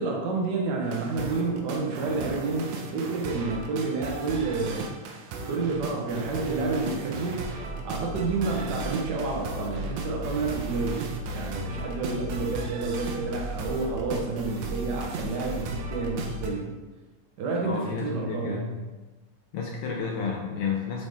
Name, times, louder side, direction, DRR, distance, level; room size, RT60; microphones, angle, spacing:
voice 1, 0.0-4.9 5.4-7.4 7.8-16.7 17.4-18.7, right 3 dB, 75° right, -1 dB, 1.0 m, -29 dB
Funk Jams, 0.8-16.5, right 2 dB, 90° right, 2.1 m, -35 dB
voice 2, 17.6-18.8 19.5-21.1, left 5 dB, 80° left, -1 dB, 1.3 m, -31 dB
6.9 x 4.1 x 3.5 m, 1.2 s
omnidirectional pair, 3.3 m